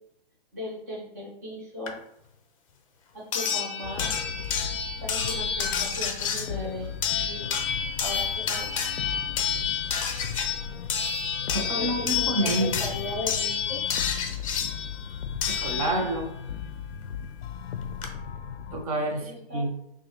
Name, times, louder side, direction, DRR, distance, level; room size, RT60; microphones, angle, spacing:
voice 1, 0.5-2.0 3.1-4.1 5.0-7.5 8.0-8.9 11.7-13.8 19.2-19.7, left 2 dB, 20° right, -6 dB, 0.3 m, -37 dB
sound 1, 1.9-2.0 3.3-16.3 17.6-17.7 18.0-18.1, left 7 dB, 35° left, 0.5 m, -29 dB
sound 2, 3.8-18.9, left 8 dB, 90° left, 0.5 m, -37 dB
voice 2, 11.5-12.8 15.5-16.3 18.7-19.7, right 1 dB, 35° right, 2 dB, 0.7 m, -28 dB
5.9 x 2.2 x 3.0 m, 0.78 s
hypercardioid pair, 155°, 31 cm